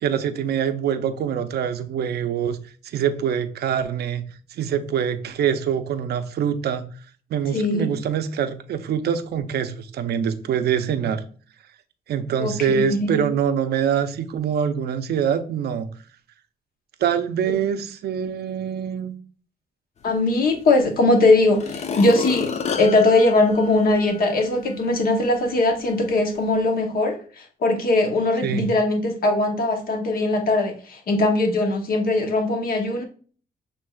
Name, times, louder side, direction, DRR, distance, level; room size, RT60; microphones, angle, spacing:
voice 1, 0.0-2.6 2.8-4.2 4.5-6.9 7.3-11.2 12.1-15.9 17.0-19.2 28.4-28.7, right 8 dB, 65° right, 9 dB, 0.6 m, -24 dB
voice 2, 7.5-7.9 12.4-13.2 20.0-33.0, left 2 dB, 55° left, 4 dB, 0.8 m, -20 dB
sound 1, 20.8-20.9 21.5-24.3 24.8-24.9, left 6 dB, 40° left, 0.5 m, -30 dB
6.4 x 3.4 x 2.3 m, 0.42 s
cardioid pair, 125°, 18 cm